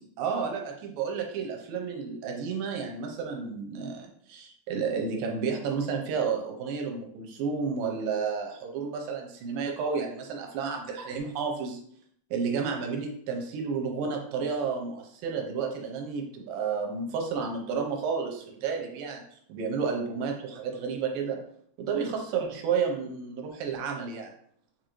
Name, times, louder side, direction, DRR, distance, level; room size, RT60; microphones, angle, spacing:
voice 1, 0.2-11.8 12.3-19.2 19.5-21.4 21.8-24.3, right 5 dB, 80° right, 2 dB, 2.3 m, -31 dB
6.6 x 2.6 x 3.0 m, 0.65 s
omnidirectional pair, 4.1 m